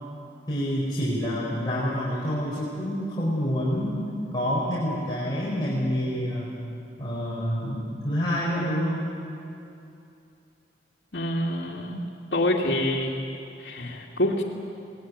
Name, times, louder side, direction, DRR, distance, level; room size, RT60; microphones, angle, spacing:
voice 1, 0.5-4.0 4.3-6.5 7.0-9.1, equal, 25° left, -7 dB, 4.7 m, -27 dB
voice 2, 11.1-12.0 12.3-13.2 13.6-14.4, left 1 dB, 80° left, -5 dB, 2.4 m, -26 dB
23.0 x 19.5 x 9.6 m, 2.6 s
head